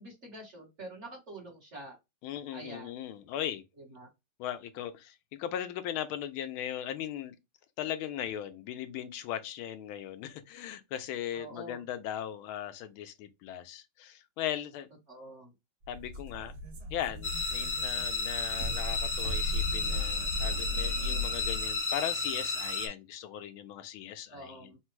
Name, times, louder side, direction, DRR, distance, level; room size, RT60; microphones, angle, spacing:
voice 1, 0.0-2.0 2.5-2.9 3.9-4.1 11.3-11.8 15.1-15.5 24.3-24.8, right 1 dB, 35° right, 1.5 m, -46 dB
voice 2, 2.2-3.6 4.4-7.3 7.8-14.9 15.9-16.5 16.9-24.7, left 10 dB, 85° left, 1.4 m, -38 dB
sound 1, 15.8-21.8, left 1 dB, 75° right, 1.8 m, -36 dB
sound 2, 17.2-22.9, left 3 dB, 50° left, 0.7 m, -33 dB
4.0 x 2.2 x 4.4 m
omnidirectional pair, 2.3 m